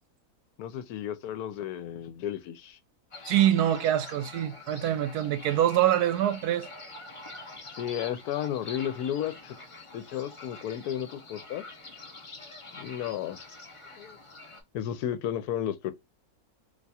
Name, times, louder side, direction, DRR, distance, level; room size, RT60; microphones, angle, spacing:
voice 1, 0.6-2.8 7.8-9.5 9.9-11.6 12.7-13.5 13.9-14.2 14.7-15.9, left 10 dB, 75° left, 1.1 m, -33 dB
sound 1, 3.1-14.6, left 2 dB, 30° left, 0.6 m, -46 dB
voice 2, 3.3-6.7, right 11 dB, 80° right, 1.1 m, -25 dB
2.7 x 2.3 x 4.0 m
omnidirectional pair, 1.6 m